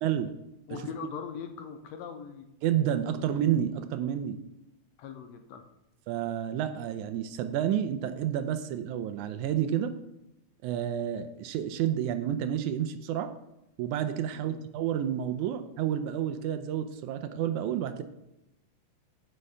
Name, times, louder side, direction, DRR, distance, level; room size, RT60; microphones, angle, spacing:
voice 1, 0.0-0.3 2.6-4.4 6.1-9.9 10.6-13.3 13.8-18.0, right 10 dB, 80° right, 9 dB, 1.9 m, -30 dB
voice 2, 0.7-2.5 3.0-3.2 5.0-5.6 14.3-14.6, left 7 dB, 70° left, 6 dB, 1.8 m, -41 dB
8.2 x 5.7 x 5.4 m, 0.90 s
omnidirectional pair, 3.7 m